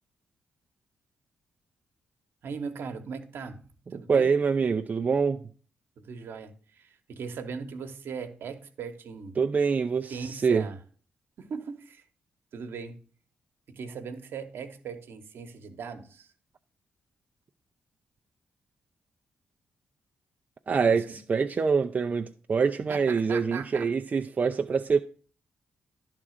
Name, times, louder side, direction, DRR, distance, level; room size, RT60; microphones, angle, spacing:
voice 1, 2.4-3.6 3.9-4.3 6.0-9.4 10.1-10.8 11.4-12.0 12.5-13.0 13.7-16.3 20.8-21.0 22.9-23.9, right 5 dB, 70° right, 1.1 m, -39 dB
voice 2, 3.9-5.4 9.4-10.6 20.7-25.0, right 5 dB, 45° right, 0.5 m, -25 dB
11.0 x 3.7 x 6.5 m
supercardioid pair, 55°, 4 cm